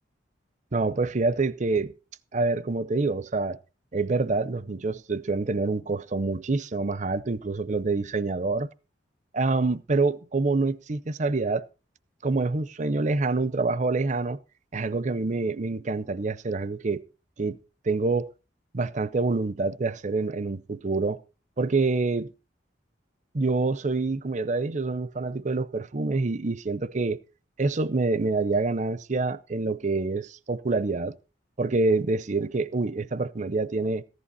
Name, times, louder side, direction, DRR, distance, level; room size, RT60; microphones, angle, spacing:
voice 1, 0.7-1.9 2.3-3.6 3.9-8.7 9.3-11.6 12.2-14.4 14.7-17.0 17.4-17.6 17.9-18.3 18.7-21.2 21.6-22.3 23.3-27.2 27.6-31.1 31.6-34.0, right 3 dB, 40° right, 0.6 m, -26 dB
15.0 x 11.5 x 4.1 m
head